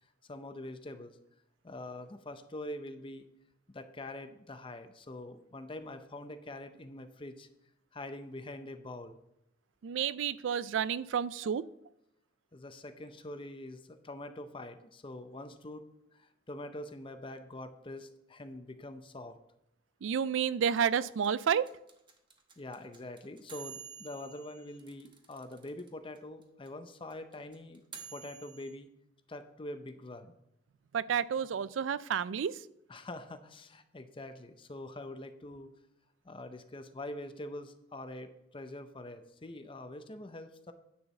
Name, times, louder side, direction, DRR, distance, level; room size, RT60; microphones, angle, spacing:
voice 1, 0.3-1.2 1.6-3.3 3.7-7.5 7.9-9.2 12.5-19.4 22.6-27.8 28.1-28.9 29.3-30.3 32.9-35.7 36.2-40.7, left 1 dB, 30° left, 0.7 m, -44 dB
voice 2, 9.8-11.7 20.0-21.7 30.9-32.7, right 8 dB, 85° right, 0.4 m, -30 dB
sound 1, 20.8-25.9 26.2-26.3 26.4-28.7, right 6 dB, 25° right, 1.0 m, -49 dB
10.0 x 4.6 x 6.7 m
head